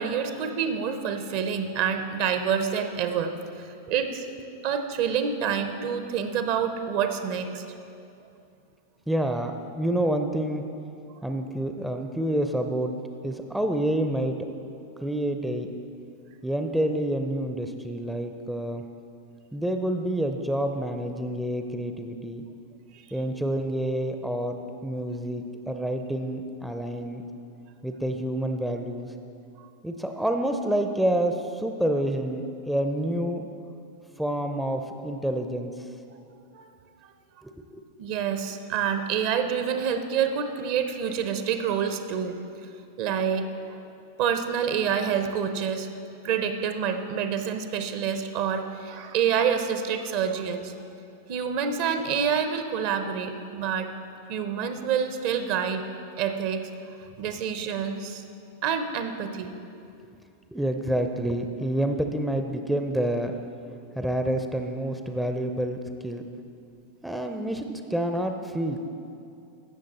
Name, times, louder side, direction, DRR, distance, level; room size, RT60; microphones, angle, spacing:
voice 1, 0.0-4.3 4.6-7.6 36.5-36.7 38.0-42.4 43.0-43.8 44.2-45.9 46.2-50.8 51.3-53.9 54.3-55.8 56.2-56.7 57.2-58.2 58.6-59.5, right 7 dB, 45° right, 8 dB, 0.7 m, -27 dB
voice 2, 9.1-10.7 11.2-13.0 13.2-14.5 15.0-15.7 16.4-18.8 19.5-22.4 23.1-27.2 27.8-29.1 29.8-33.5 34.2-35.9 37.4-37.8 60.5-63.3 64.0-66.2 67.0-68.8, right 1 dB, 5° right, 5 dB, 0.5 m, -28 dB
15.5 x 6.4 x 4.2 m, 2.6 s
figure-of-eight pair, 90°, 0 cm